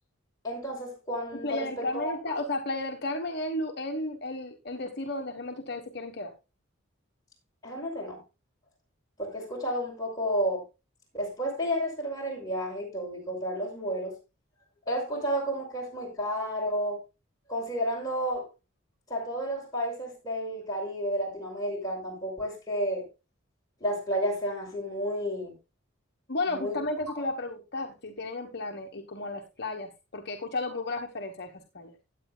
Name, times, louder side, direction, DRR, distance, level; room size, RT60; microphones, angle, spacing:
voice 1, 0.4-2.4 7.6-8.2 9.2-10.6 11.1-14.2 14.9-17.0 17.5-18.5 19.1-23.0 23.8-25.6 26.5-26.8, equal, 20° left, 5.9 m, -31 dB
voice 2, 1.3-6.3 26.3-31.9, left 2 dB, 50° left, 1.3 m, -33 dB
16.5 x 9.4 x 2.3 m
head